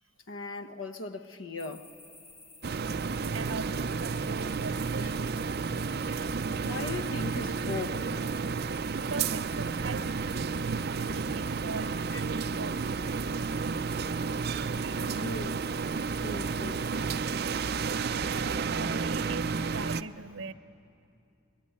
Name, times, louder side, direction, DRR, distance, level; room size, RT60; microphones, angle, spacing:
voice 1, 0.3-1.9 5.0-5.1 6.6-8.2 12.1-12.2 12.5-12.6 15.2-15.6 16.2-16.9, left 2 dB, 85° left, 1.3 m, -38 dB
sound 1, 1.6-18.0, left 3 dB, 40° left, 3.7 m, -52 dB
sound 2, 2.6-20.0, right 5 dB, 55° right, 0.5 m, -31 dB
voice 2, 3.3-5.2 8.6-8.7 9.0-10.1 10.8-13.1 14.8-15.2 18.0-20.5, right 3 dB, 80° right, 0.9 m, -41 dB
23.5 x 22.5 x 9.6 m
head